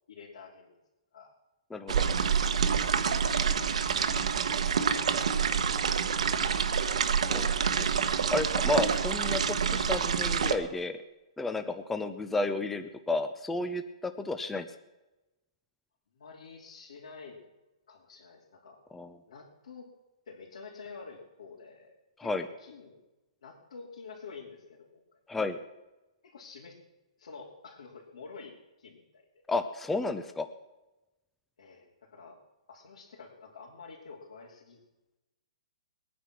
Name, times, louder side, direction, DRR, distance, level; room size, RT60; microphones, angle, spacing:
voice 1, 0.1-0.7 1.1-1.3 3.0-5.0 5.6-5.9 16.1-17.4 17.9-18.8 19.3-19.9 20.3-23.0 23.4-25.0 26.2-26.8 27.2-29.4 31.6-32.4 32.7-34.8, left 5 dB, 75° left, -4 dB, 3.1 m, -49 dB
voice 2, 1.7-2.0 6.7-6.8 7.3-7.5 7.8-7.9 8.3-11.0 11.4-14.7 18.9-19.1 22.2-22.5 25.3-25.6 29.5-30.5, left 2 dB, 5° left, 9 dB, 0.5 m, -32 dB
sound 1, 1.9-10.5, right 6 dB, 75° right, 1.3 m, -27 dB
20.5 x 9.3 x 6.2 m, 1.0 s
hypercardioid pair, 165°, 4 cm